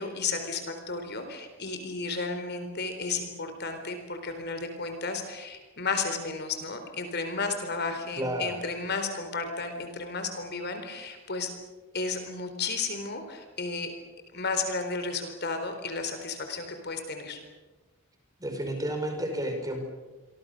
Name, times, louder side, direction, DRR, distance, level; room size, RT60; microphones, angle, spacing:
voice 1, 0.0-11.5 11.9-13.9 14.3-17.4, left 4 dB, 50° left, 7 dB, 4.1 m, -33 dB
voice 2, 8.1-8.6 18.4-19.8, right 1 dB, 15° right, 4 dB, 5.0 m, -31 dB
28.5 x 24.0 x 6.7 m, 1.2 s
head